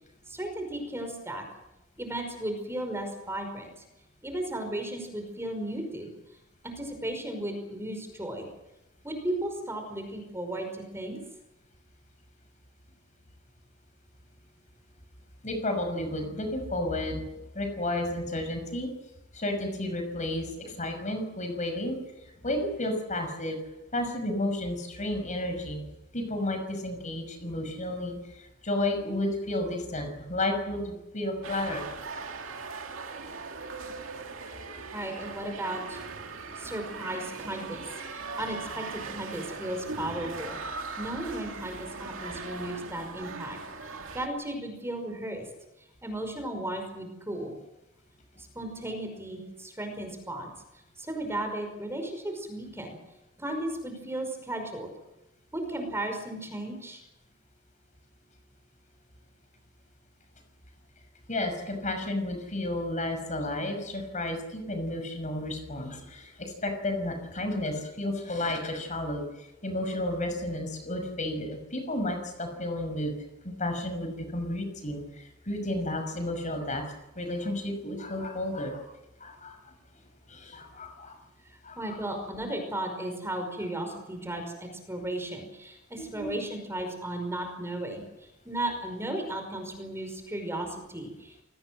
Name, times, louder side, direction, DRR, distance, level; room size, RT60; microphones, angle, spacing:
voice 1, 0.3-1.5 2.0-3.8 4.2-6.1 6.6-8.5 9.0-11.2 34.9-36.0 36.6-37.8 38.1-43.6 44.1-45.5 46.0-47.5 48.4-50.5 51.0-53.0 53.4-54.9 55.5-57.0 81.5-91.4, right 1 dB, 15° right, 5 dB, 5.3 m, -35 dB
voice 2, 15.4-17.2 17.5-18.9 19.3-22.0 22.4-23.6 23.9-25.8 26.1-31.9 34.7-34.8 61.3-73.1 73.4-76.8 77.2-78.8 79.2-79.6 80.3-81.2 81.6-82.0 86.0-86.3, left 1 dB, 35° left, 6 dB, 6.0 m, -32 dB
sound 1, 31.4-44.3, right 4 dB, 70° right, 2.4 m, -39 dB
28.0 x 19.0 x 7.8 m, 0.92 s
head